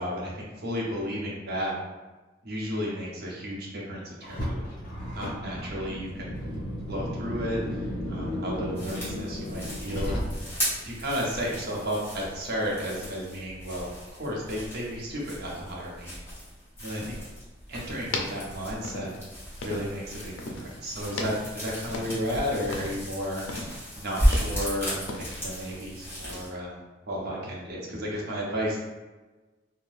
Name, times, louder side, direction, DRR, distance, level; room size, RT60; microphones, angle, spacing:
voice 1, 0.0-1.7 2.4-4.6 5.1-6.4 6.8-10.2 10.8-16.1 16.8-17.2 17.7-19.1 19.6-23.4 23.9-26.8 27.1-28.8, equal, 55° right, -3 dB, 0.8 m, -33 dB
Car, 4.2-10.7, equal, 50° left, 0.9 m, -34 dB
sound 1, 8.7-26.5, equal, 10° left, 1.2 m, -34 dB
sound 2, 17.8-20.1 20.4-20.8 21.1-22.4 22.6-23.1 23.5-24.7 25.1-25.5, left 2 dB, 90° left, 0.4 m, -36 dB
2.6 x 2.2 x 3.2 m, 1.2 s
head